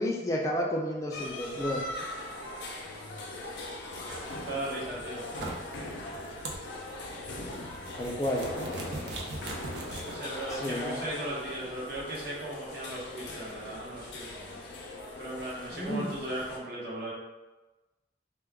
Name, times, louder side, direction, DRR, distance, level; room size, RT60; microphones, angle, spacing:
voice 1, 0.0-1.8 8.0-8.5 10.5-11.0 15.7-16.1, equal, 20° left, -1 dB, 0.3 m, -31 dB
sound 1, 1.1-16.6, left 2 dB, 90° left, 0.5 m, -40 dB
voice 2, 3.7-4.1 4.4-5.3 10.0-14.6 15.2-17.1, right 1 dB, 60° right, -6 dB, 0.9 m, -37 dB
sound 2, 4.1-10.6, right 2 dB, 80° right, 0.5 m, -42 dB
2.2 x 2.2 x 3.4 m, 1.1 s
head